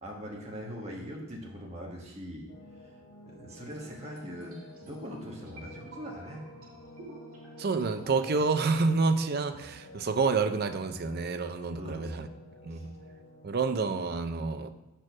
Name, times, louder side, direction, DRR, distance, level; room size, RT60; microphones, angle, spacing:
voice 1, 0.0-2.5 2.8-2.9 3.3-6.4 11.8-12.2 12.7-12.9, equal, 30° right, -2 dB, 1.3 m, -41 dB
sound 1, 2.5-13.6, left 1 dB, 80° left, 1.0 m, -51 dB
sound 2, 3.5-8.7, right 2 dB, 75° right, 2.2 m, -53 dB
voice 2, 7.6-12.3 12.6-12.9 13.4-14.7, right 4 dB, 45° right, 9 dB, 0.4 m, -28 dB
6.2 x 4.5 x 5.9 m, 1.0 s
head